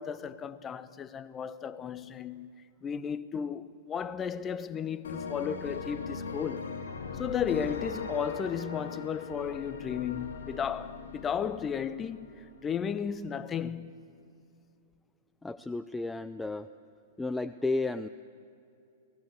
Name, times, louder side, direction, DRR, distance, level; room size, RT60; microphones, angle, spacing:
voice 1, 0.0-2.5 2.8-6.7 7.1-13.9, left 7 dB, 20° left, 0.9 m, -34 dB
sound 1, 5.0-12.7, left 5 dB, 70° left, 2.8 m, -40 dB
voice 2, 15.4-16.7 17.2-18.1, left 2 dB, 5° left, 0.5 m, -32 dB
29.0 x 18.5 x 8.3 m
figure-of-eight pair, 105°, 0 cm